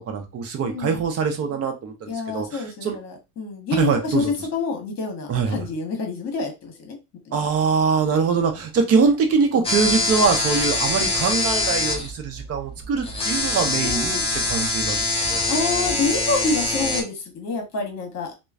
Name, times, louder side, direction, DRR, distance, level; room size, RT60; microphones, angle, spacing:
voice 1, 0.1-3.0 3.8-4.3 5.3-5.7 7.3-14.2 14.5-15.4, right 5 dB, 35° right, 5 dB, 0.7 m, -23 dB
voice 2, 0.6-1.0 2.1-4.2 4.5-7.0 7.2-7.4 13.8-14.2 15.5-18.3, left 3 dB, 35° left, 3 dB, 1.1 m, -27 dB
sound 1, 9.6-17.0, left 2 dB, 15° left, 0.5 m, -24 dB
3.0 x 2.2 x 2.3 m, 0.26 s
supercardioid pair, 120°, 45 cm